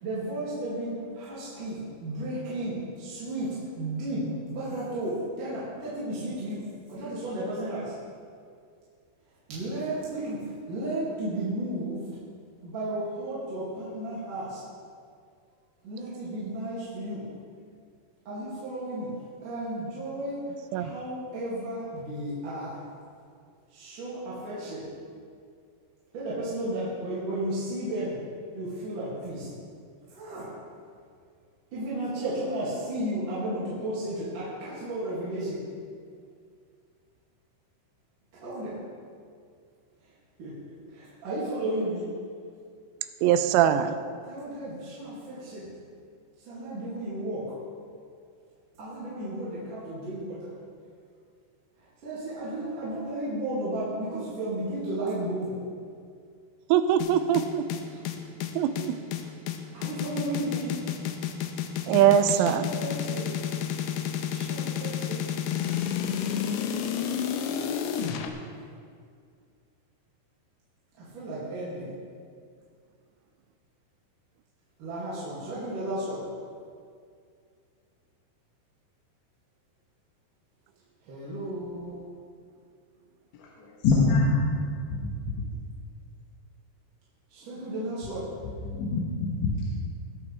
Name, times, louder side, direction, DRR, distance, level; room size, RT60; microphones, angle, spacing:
voice 1, 0.0-6.6 6.9-7.9 9.5-10.4 10.6-12.0 12.6-14.6 15.8-17.2 18.3-19.1 19.4-20.4 20.7-22.8 23.7-24.9 26.1-28.2 28.5-29.5 30.1-30.5 31.7-35.6 38.4-38.8 40.4-40.5 40.9-42.1 44.3-45.7 46.5-47.5 48.8-50.4 52.0-55.5 59.7-60.8 62.0-63.4 64.3-65.2 71.0-71.9 74.8-76.2 81.1-82.0 87.3-88.3, right 1 dB, 50° right, -9 dB, 3.5 m, -33 dB
voice 2, 43.2-43.9 56.7-57.6 58.6-59.0 61.9-62.7, right 10 dB, 85° right, 10 dB, 3.1 m, -22 dB
sound 1, 57.0-68.3, left 9 dB, 90° left, 2.4 m, -30 dB
voice 3, 83.6-84.3 84.9-85.1 88.6-89.7, left 3 dB, 70° left, -4 dB, 3.4 m, -25 dB
20.5 x 8.4 x 3.4 m, 2.2 s
omnidirectional pair, 5.7 m